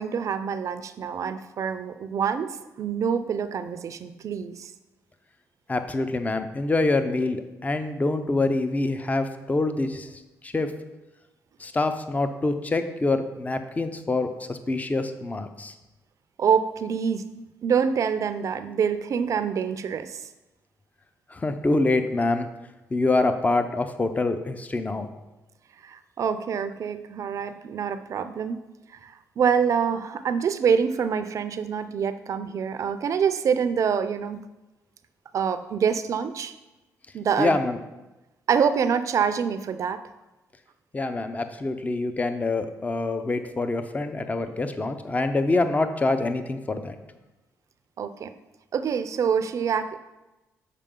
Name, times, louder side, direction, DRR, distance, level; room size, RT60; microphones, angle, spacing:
voice 1, 0.0-4.7 16.4-20.3 25.8-28.6 29.0-34.4 35.3-36.5 37.1-37.6 38.5-40.0 48.0-48.3 48.7-50.0, right 7 dB, 60° right, 11 dB, 0.5 m, -26 dB
voice 2, 5.7-10.7 11.6-15.7 21.3-22.5 22.9-25.1 37.4-37.8 40.9-47.0, left 2 dB, 25° left, 9 dB, 0.6 m, -25 dB
6.6 x 4.8 x 3.7 m, 1.0 s
supercardioid pair, 65°, 6 cm